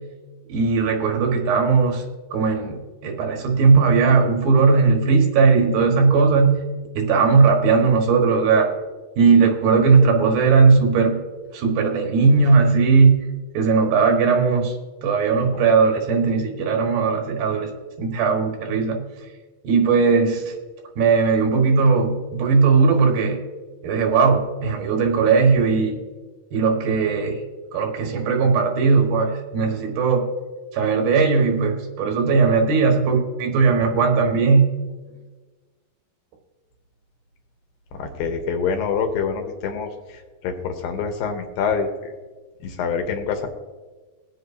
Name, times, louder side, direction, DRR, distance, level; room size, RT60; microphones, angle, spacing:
voice 1, 0.5-2.0 2.3-6.5 6.9-8.7 9.2-11.2 11.5-13.2 13.5-14.8 15.0-17.7 18.0-19.0 19.6-20.5 21.0-23.4 23.8-26.0 26.5-27.4 27.7-30.3 30.7-34.7, right 4 dB, 80° right, 2 dB, 3.3 m, -18 dB
voice 2, 38.0-41.9 42.6-43.5, left 6 dB, 80° left, 4 dB, 2.7 m, -26 dB
22.0 x 7.7 x 2.7 m, 1.3 s
omnidirectional pair, 4.2 m